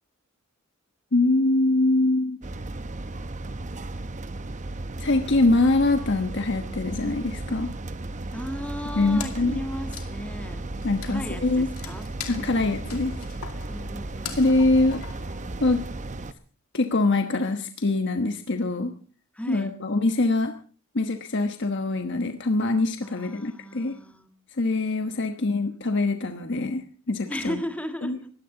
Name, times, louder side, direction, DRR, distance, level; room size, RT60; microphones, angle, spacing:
voice 1, 1.1-2.4 5.0-7.7 8.9-9.6 10.8-11.7 12.3-13.1 14.4-15.0 15.6-15.8 16.7-18.9 19.5-20.5 20.9-24.0 24.6-27.6 28.0-28.2, left 2 dB, 55° left, 6 dB, 1.2 m, -23 dB
sound 1, 2.4-16.3, right 2 dB, 35° right, 0.8 m, -35 dB
voice 2, 8.3-10.6 11.0-12.8 13.7-14.4 19.3-19.7 23.0-24.3 27.3-28.3, equal, 5° left, 6 dB, 1.8 m, -36 dB
Wood, 9.2-15.9, left 8 dB, 85° left, 2.3 m, -42 dB
20.0 x 16.0 x 3.9 m, 0.42 s
head